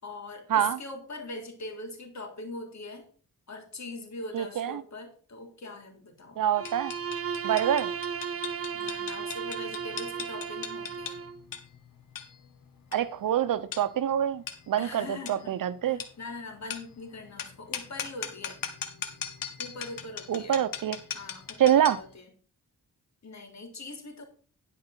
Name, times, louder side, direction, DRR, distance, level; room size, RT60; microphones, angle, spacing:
voice 1, 0.0-3.1 3.5-6.4 8.7-11.2 14.8-18.6 19.6-20.7 21.1-22.3 23.2-24.3, left 2 dB, 55° left, 3.5 m, -42 dB
voice 2, 4.3-4.8 6.4-6.9 7.4-7.9 12.9-16.0 20.3-21.0 21.6-22.0, right 10 dB, 75° right, 0.8 m, -26 dB
Bowed string instrument, 6.5-11.4, right 7 dB, 45° right, 0.8 m, -35 dB
sound 1, 6.7-22.1, left 8 dB, 80° left, 1.6 m, -40 dB
11.0 x 5.0 x 5.8 m
cardioid pair, 65°, 34 cm